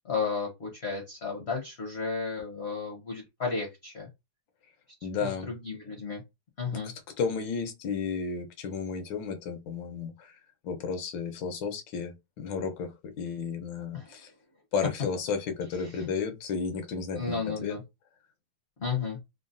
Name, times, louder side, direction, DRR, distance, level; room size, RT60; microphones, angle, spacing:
voice 1, 0.0-4.1 5.1-6.2 6.6-6.9 13.9-14.1 15.8-16.1 17.2-17.8 18.8-19.2, left 4 dB, 55° left, 0.7 m, -33 dB
voice 2, 5.0-5.5 6.8-10.4 10.6-14.3 14.7-17.8, left 5 dB, 85° left, 1.4 m, -33 dB
3.7 x 2.0 x 2.5 m
omnidirectional pair, 2.0 m